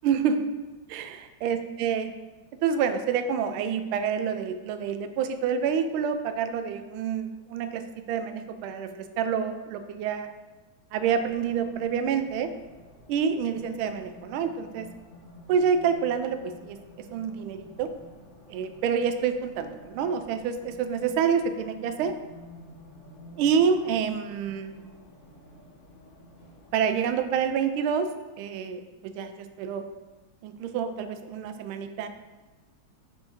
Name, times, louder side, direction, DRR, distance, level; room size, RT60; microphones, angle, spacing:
voice 1, 0.0-0.5 0.9-2.1 2.6-10.3 10.9-12.5 13.1-14.9 15.5-17.9 18.5-22.1 23.4-24.8 26.7-28.1 28.4-29.8 30.4-32.1, right 7 dB, 80° right, 9 dB, 1.4 m, -27 dB
Race car auto racing, 11.0-27.6, left 1 dB, 40° left, 0.7 m, -51 dB
7.8 x 4.6 x 3.5 m, 1.2 s
omnidirectional pair, 2.3 m